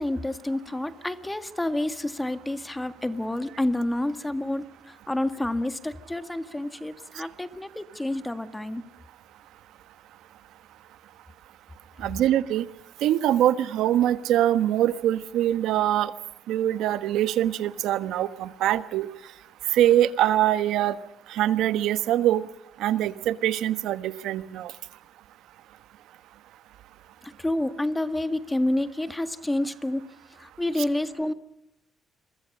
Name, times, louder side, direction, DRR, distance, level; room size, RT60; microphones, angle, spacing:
voice 1, 0.0-4.7 5.1-8.8 27.2-30.1 30.4-31.3, left 1 dB, 10° left, 11 dB, 1.8 m, -29 dB
voice 2, 12.0-12.7 13.0-16.1 16.5-19.1 19.7-20.9 21.3-22.5 22.8-24.7, right 12 dB, 85° right, 13 dB, 1.3 m, -23 dB
28.5 x 23.0 x 5.5 m, 0.82 s
cardioid pair, 90°, 0 cm